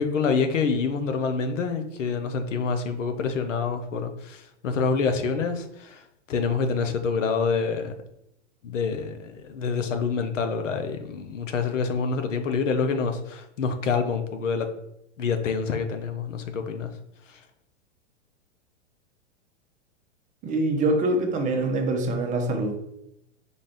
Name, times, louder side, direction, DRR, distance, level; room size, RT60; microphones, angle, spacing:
voice 1, 0.0-6.0 6.3-7.9 8.6-14.7 15.2-16.9, left 5 dB, 90° left, 7 dB, 0.7 m, -27 dB
voice 2, 20.4-22.7, right 2 dB, 20° right, 3 dB, 0.6 m, -24 dB
4.0 x 2.4 x 3.5 m, 0.80 s
hypercardioid pair, 125°, 36 cm